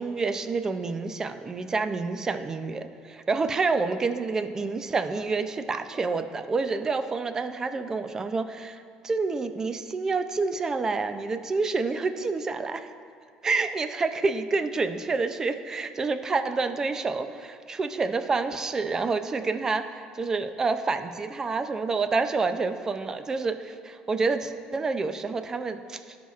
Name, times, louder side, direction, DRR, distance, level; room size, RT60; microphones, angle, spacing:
voice 1, 0.0-12.9 13.4-26.2, right 4 dB, 25° right, 9 dB, 0.4 m, -28 dB
16.5 x 5.9 x 2.4 m, 2.3 s
cardioid pair, 130°, 3 cm